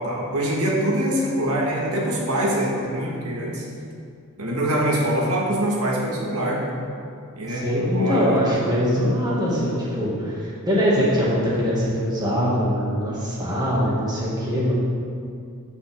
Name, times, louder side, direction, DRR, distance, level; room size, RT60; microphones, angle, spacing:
voice 1, 0.0-3.7 4.4-6.7 7.3-8.4, right 1 dB, 75° right, -2 dB, 1.7 m, -24 dB
voice 2, 7.5-14.7, equal, 20° right, -7 dB, 2.1 m, -22 dB
12.0 x 5.6 x 3.7 m, 2.3 s
head